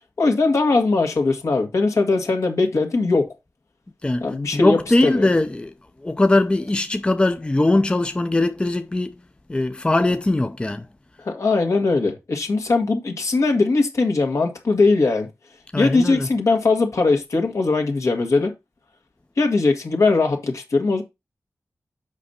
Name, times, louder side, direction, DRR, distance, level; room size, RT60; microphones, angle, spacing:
voice 1, 0.2-3.3 4.2-5.3 11.2-15.3 15.8-18.5 19.4-21.0, left 3 dB, 70° left, 1.8 m, -20 dB
voice 2, 4.0-5.7 6.0-9.2 9.5-10.9 15.7-16.3, left 2 dB, 20° left, 0.5 m, -20 dB
7.4 x 5.1 x 4.2 m
wide cardioid pair, 90°, 5 cm